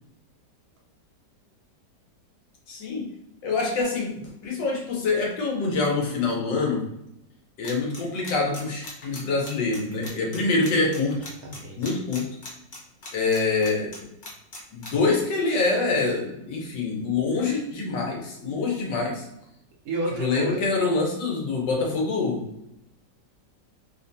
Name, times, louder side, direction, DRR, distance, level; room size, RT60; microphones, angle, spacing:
voice 1, 2.7-3.1 3.4-6.9 7.6-11.2 11.8-12.4 13.1-14.1 14.7-19.3 20.2-22.5, left 3 dB, 85° left, -1 dB, 1.5 m, -25 dB
sound 1, 7.6-14.9, left 2 dB, 60° left, 0.5 m, -39 dB
voice 2, 11.4-12.0 19.8-20.6, right 2 dB, 65° right, -1 dB, 1.1 m, -31 dB
3.5 x 2.2 x 2.6 m, 0.82 s
omnidirectional pair, 1.9 m